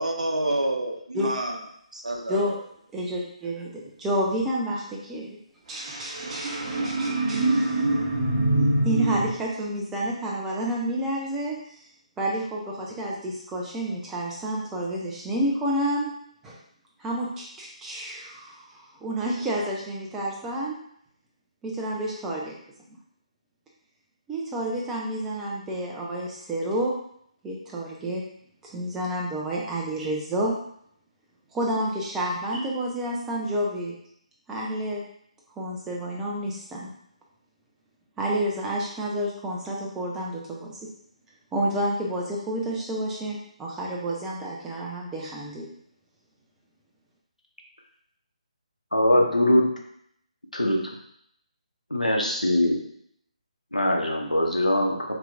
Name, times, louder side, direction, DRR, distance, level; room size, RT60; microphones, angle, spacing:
voice 1, 0.0-1.6 1.9-2.6, right 1 dB, 75° right, 2 dB, 0.8 m, -28 dB
voice 2, 2.9-5.4 5.7-8.0 8.8-11.5 12.2-16.1 16.4-16.6 17.0-20.8 21.6-22.5 24.3-26.9 27.4-28.2 28.7-30.6 31.5-33.9 34.5-35.0 35.6-36.9 38.2-40.8 41.5-45.7, right 1 dB, 10° right, -3 dB, 0.6 m, -29 dB
sound 1, 5.8-9.3, right 1 dB, 40° right, 0.9 m, -24 dB
voice 3, 48.9-49.7 50.5-50.8 51.9-52.8 53.7-55.1, left 1 dB, 85° left, 0 dB, 0.9 m, -22 dB
4.9 x 3.0 x 2.4 m, 0.68 s
figure-of-eight pair, 145°, 4 cm